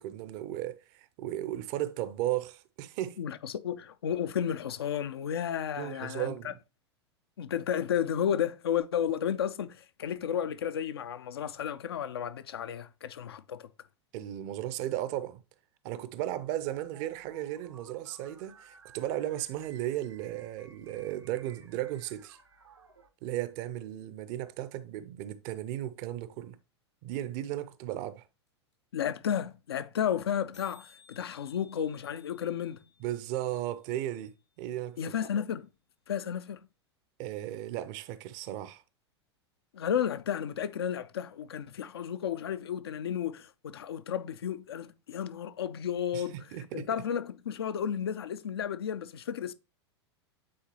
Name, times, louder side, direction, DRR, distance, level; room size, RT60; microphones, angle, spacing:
voice 1, 0.0-3.2 5.8-6.6 14.1-15.4 15.8-22.4 23.2-26.6 27.0-28.3 33.0-35.0 37.2-38.8 46.1-46.9, right 13 dB, 40° right, 0.6 m, -35 dB
voice 2, 3.2-6.5 7.4-13.7 28.9-32.8 35.0-35.7 36.1-36.6 39.7-46.4 46.7-49.5, left 9 dB, 65° left, 0.4 m, -32 dB
sound 1, 16.4-23.1, right 5 dB, 75° right, 0.8 m, -57 dB
sound 2, 28.5-28.6 28.7-28.8 29.0-29.2 29.5-29.6 29.8-30.0 30.3-30.4 30.5-34.5, left 5 dB, 85° left, 2.4 m, -61 dB
8.6 x 3.9 x 2.9 m
figure-of-eight pair, 90°, 14 cm